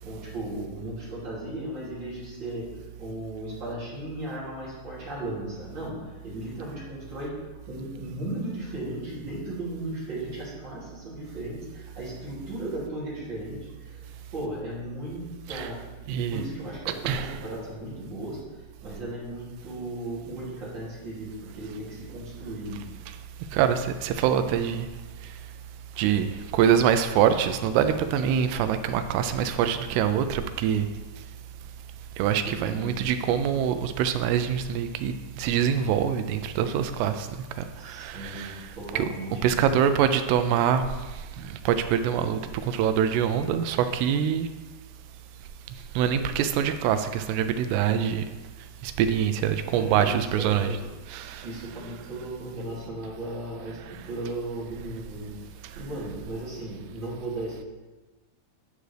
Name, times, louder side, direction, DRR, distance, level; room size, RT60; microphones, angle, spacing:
voice 1, 0.0-2.7 3.0-7.3 7.7-15.2 15.5-15.8 16.3-22.8 32.4-33.3 37.7-39.7 49.7-50.8 51.4-57.6, right 1 dB, 30° right, -8 dB, 2.7 m, -36 dB
voice 2, 16.1-16.4 16.9-17.4 23.5-24.9 26.0-26.3 26.5-30.9 32.2-37.3 37.6-39.1 39.4-40.8 41.4-44.5 46.0-48.3 48.8-50.8 51.1-51.5, right 9 dB, 85° right, 9 dB, 2.5 m, -25 dB
11.5 x 6.0 x 3.3 m, 1.2 s
omnidirectional pair, 5.0 m